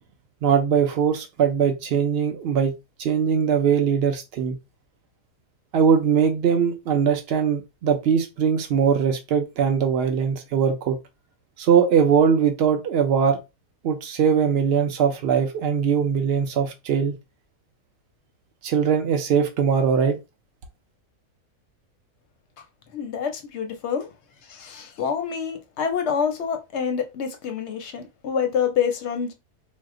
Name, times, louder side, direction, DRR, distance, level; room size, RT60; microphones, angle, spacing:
voice 1, 0.4-4.6 5.7-11.0 11.6-13.4 13.8-17.2 18.6-20.2, right 7 dB, 85° right, 0.5 m, -21 dB
voice 2, 22.9-24.1 24.5-29.3, left 7 dB, 60° left, 0.7 m, -27 dB
2.7 x 2.1 x 3.6 m
omnidirectional pair, 1.7 m